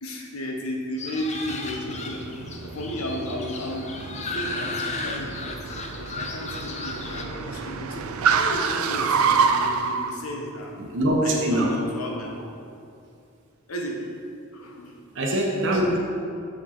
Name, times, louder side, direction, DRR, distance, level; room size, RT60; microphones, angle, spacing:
voice 1, 0.0-2.2 2.6-10.8 11.2-12.4 13.7-14.0 14.5-15.0, equal, 80° left, 1 dB, 1.2 m, -34 dB
sound 1, 1.0-7.2, left 3 dB, 30° left, 0.6 m, -35 dB
Car, 1.2-10.1, right 5 dB, 75° right, 0.5 m, -28 dB
voice 2, 10.8-11.8 15.1-16.0, right 1 dB, 55° right, -2 dB, 1.0 m, -23 dB
7.2 x 5.1 x 5.7 m, 2.5 s
head